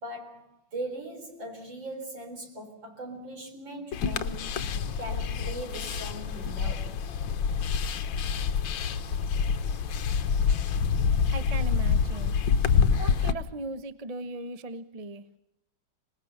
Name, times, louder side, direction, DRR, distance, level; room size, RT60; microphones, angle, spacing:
voice 1, 0.0-4.6 5.0-7.0, right 1 dB, 60° right, 4.6 m, -40 dB
sound 1, 3.9-13.3, left 6 dB, 65° left, 1.6 m, -27 dB
voice 2, 11.3-12.3 13.0-15.2, right 2 dB, 30° right, 0.6 m, -38 dB
26.0 x 20.0 x 6.7 m
omnidirectional pair, 2.4 m